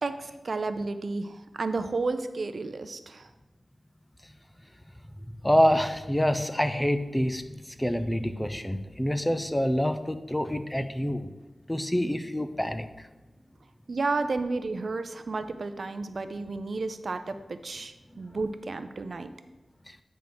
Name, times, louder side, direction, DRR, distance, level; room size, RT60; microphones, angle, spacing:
voice 1, 0.0-3.3 13.9-19.3, right 3 dB, 60° right, 10 dB, 0.5 m, -32 dB
voice 2, 5.4-11.3 11.7-13.1 18.1-18.2 19.9-20.0, equal, 10° left, 9 dB, 0.4 m, -27 dB
8.8 x 3.6 x 6.0 m, 1.1 s
wide cardioid pair, 105°, 0 cm